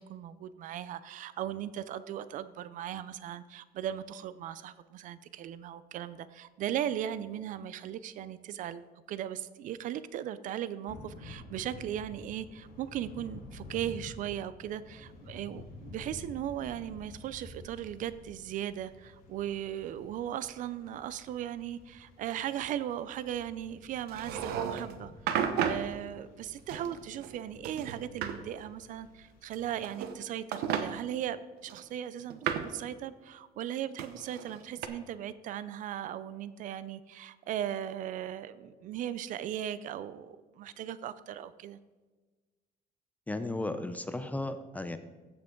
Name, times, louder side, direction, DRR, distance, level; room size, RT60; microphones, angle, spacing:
voice 1, 0.0-25.1 25.6-31.4 31.6-41.8, right 11 dB, 55° right, 15 dB, 0.5 m, -38 dB
Thunder / Rain, 10.9-29.9, left 2 dB, 65° left, 2.0 m, -51 dB
sound 1, 24.1-24.9 25.3-25.9 26.7-27.4 27.6-28.4 29.5-30.2 30.5-30.9 31.7-32.8 34.0-34.9, right 8 dB, 75° right, 0.9 m, -33 dB
voice 2, 43.3-45.0, left 2 dB, 10° left, 10 dB, 0.4 m, -35 dB
15.5 x 5.9 x 3.8 m, 1.3 s
cardioid pair, 165°, 16 cm